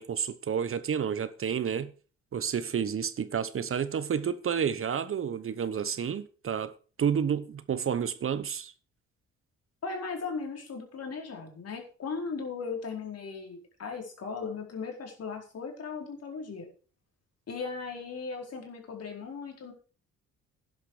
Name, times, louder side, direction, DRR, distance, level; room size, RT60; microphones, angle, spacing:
voice 1, 0.0-1.9 2.3-6.7 7.0-8.7, right 7 dB, 45° right, 1.0 m, -30 dB
voice 2, 9.8-16.7 17.5-19.7, left 4 dB, 55° left, 4.7 m, -37 dB
12.0 x 10.5 x 4.9 m
cardioid pair, 90°, 30 cm